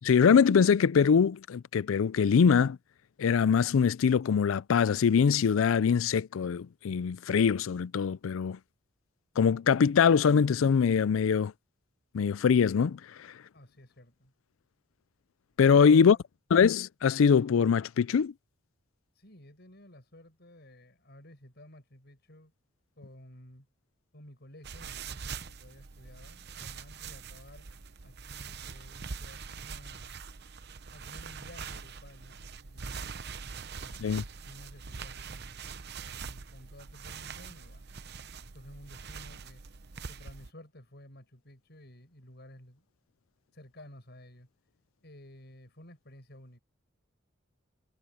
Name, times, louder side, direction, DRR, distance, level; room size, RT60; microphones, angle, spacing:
voice 1, 0.0-2.8 3.2-8.6 9.4-11.5 12.1-13.0 15.6-16.2 16.5-18.3 34.0-34.2, left 6 dB, 85° left, 0.4 m, -23 dB
voice 2, 13.5-14.3 15.7-16.2 19.1-22.5 23.0-23.7 24.1-27.7 28.0-30.2 30.9-34.1 34.4-35.7 36.0-38.0 38.5-39.6 40.1-42.8 43.5-44.5 45.0-46.6, left 1 dB, 55° left, 6.6 m, -53 dB
sound 1, 24.6-40.5, right 5 dB, 55° right, 0.8 m, -43 dB
head